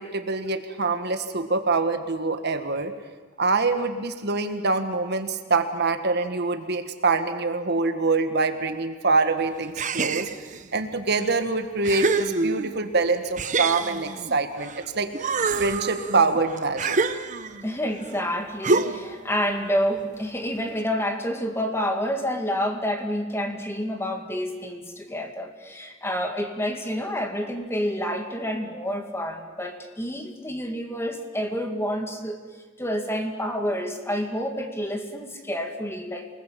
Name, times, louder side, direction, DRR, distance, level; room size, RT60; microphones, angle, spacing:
voice 1, 0.0-2.9 3.4-10.3 10.7-15.1 15.6-17.0, right 3 dB, 60° right, 8 dB, 1.6 m, -25 dB
sound 1, 9.8-10.6 11.3-11.4 11.8-12.9 13.4-14.8 15.1-17.7 18.6-19.2, right 4 dB, 40° right, 1.0 m, -26 dB
voice 2, 17.6-32.4 32.8-36.3, equal, 15° left, 5 dB, 2.2 m, -28 dB
28.0 x 20.0 x 7.6 m, 1.4 s
head